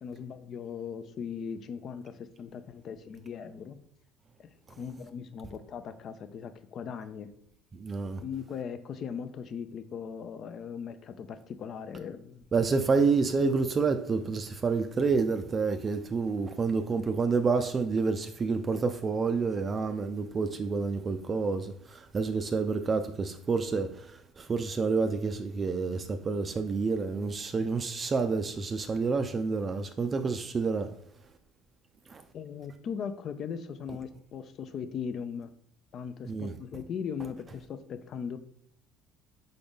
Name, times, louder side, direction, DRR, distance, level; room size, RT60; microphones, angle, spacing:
voice 1, 0.0-3.8 4.4-4.5 4.8-7.3 8.2-12.5 12.9-13.0 32.3-35.5 35.9-38.4, left 7 dB, 50° left, 0.4 m, -39 dB
voice 2, 7.7-8.2 12.5-30.9 32.1-32.2 36.3-36.5, right 4 dB, 35° right, 0.4 m, -29 dB
3.8 x 3.8 x 3.5 m
hypercardioid pair, 65°, 0 cm